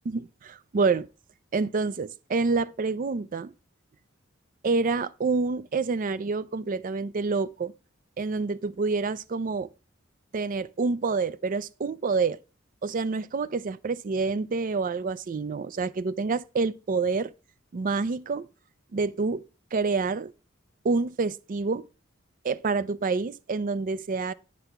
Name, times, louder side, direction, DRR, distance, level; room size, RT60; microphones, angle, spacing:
voice 1, 0.1-1.1 1.5-3.5 4.6-7.7 8.2-9.7 10.3-12.4 12.8-17.3 17.7-18.5 18.9-19.4 19.7-20.3 20.8-21.9 22.4-24.3, right 4 dB, 40° right, 0.4 m, -27 dB
9.6 x 3.4 x 5.9 m
head